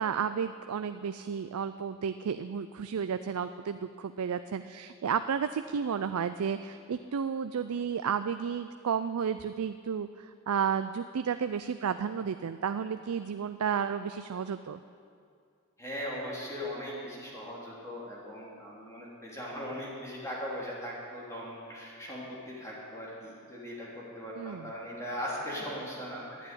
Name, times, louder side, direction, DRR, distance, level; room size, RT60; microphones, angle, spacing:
voice 1, 0.0-14.8 24.4-24.7, right 7 dB, 85° right, 10 dB, 0.4 m, -32 dB
voice 2, 15.8-26.5, equal, 15° left, -5 dB, 3.1 m, -39 dB
11.5 x 9.1 x 9.8 m, 2.4 s
head